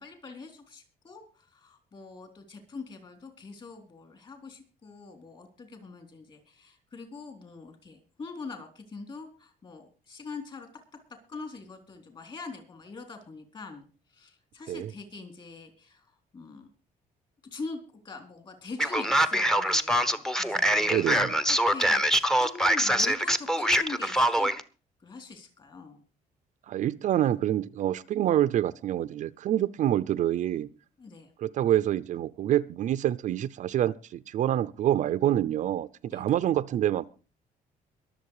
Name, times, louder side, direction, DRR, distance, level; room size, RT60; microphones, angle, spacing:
voice 1, 0.0-10.7 11.3-16.7 17.5-21.2 21.5-24.5 25.0-26.0 31.0-31.3 36.1-36.4, left 4 dB, 35° left, 6 dB, 3.9 m, -43 dB
Male speech man speaking, 18.8-24.6, equal, 5° left, 0.9 m, -24 dB
voice 2, 20.9-21.4 26.7-30.7 31.4-37.1, right 12 dB, 55° right, 15 dB, 0.6 m, -27 dB
22.5 x 7.6 x 4.8 m, 0.35 s
cardioid pair, 155°, 15 cm